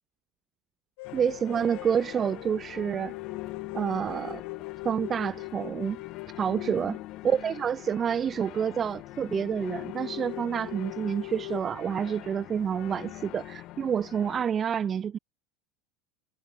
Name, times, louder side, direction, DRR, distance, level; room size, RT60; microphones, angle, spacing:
sound 1, 1.0-8.3 8.6-8.7 9.0-9.1 9.3-11.6, left 26 dB, 70° left, 6.8 m, -42 dB
sound 2, 1.0-14.5, left 17 dB, 40° left, 7.7 m, -43 dB
voice 1, 1.1-3.1 3.7-4.4 4.8-6.0 6.4-7.0 7.2-15.2, right 8 dB, 20° right, 0.7 m, -28 dB
supercardioid pair, 165°, 0 cm